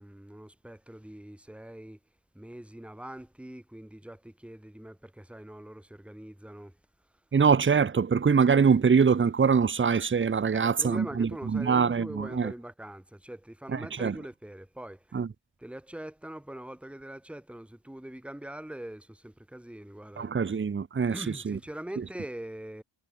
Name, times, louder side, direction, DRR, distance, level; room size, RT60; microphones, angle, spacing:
voice 1, 0.0-2.0 2.3-6.8 10.5-15.2 15.6-20.3 21.1-22.8, right 1 dB, ahead, 2.1 m, -43 dB
voice 2, 7.3-12.5 13.7-14.1 15.1-15.3 20.2-21.2 21.5-21.6, right 6 dB, 25° right, 0.7 m, -24 dB
wide cardioid pair, 175°, 49 cm